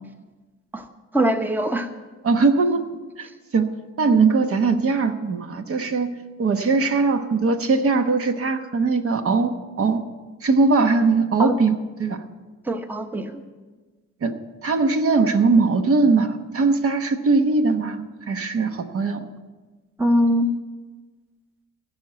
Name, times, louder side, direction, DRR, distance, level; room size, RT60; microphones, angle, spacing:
voice 1, 1.1-1.9 11.4-11.5 12.7-13.4 20.0-20.5, equal, 5° right, 7 dB, 0.9 m, -22 dB
voice 2, 2.2-2.8 3.2-3.3 3.5-3.7 4.0-6.1 6.4-10.0 10.4-12.2 14.2-14.3 14.6-19.3, right 4 dB, 50° right, 7 dB, 1.2 m, -20 dB
16.0 x 5.9 x 9.0 m, 1.3 s
cardioid pair, 90°, 30 cm